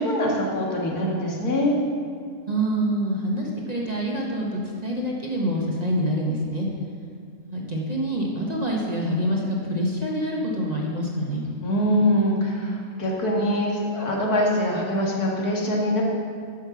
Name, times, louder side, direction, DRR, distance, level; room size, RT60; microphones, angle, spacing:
voice 1, 0.0-1.7 11.6-16.0, equal, 90° left, -2 dB, 2.1 m, -23 dB
voice 2, 2.5-6.7 7.4-11.4, equal, 30° right, -2 dB, 1.1 m, -26 dB
9.6 x 5.5 x 7.1 m, 2.2 s
omnidirectional pair, 1.6 m